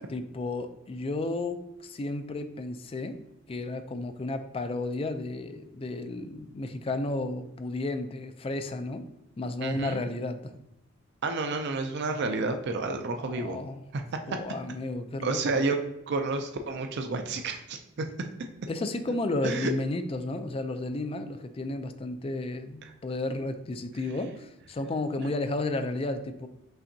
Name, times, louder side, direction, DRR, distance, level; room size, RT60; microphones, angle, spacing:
voice 1, 0.1-3.2 3.5-9.0 9.4-10.5 13.1-13.8 14.3-15.8 18.7-26.5, left 2 dB, 25° left, 9 dB, 0.3 m, -33 dB
voice 2, 9.6-10.0 11.2-13.6 13.9-14.4 15.2-15.8 16.1-18.1 19.4-19.7, right 3 dB, 55° right, 6 dB, 0.4 m, -30 dB
5.6 x 3.3 x 2.7 m, 0.87 s
head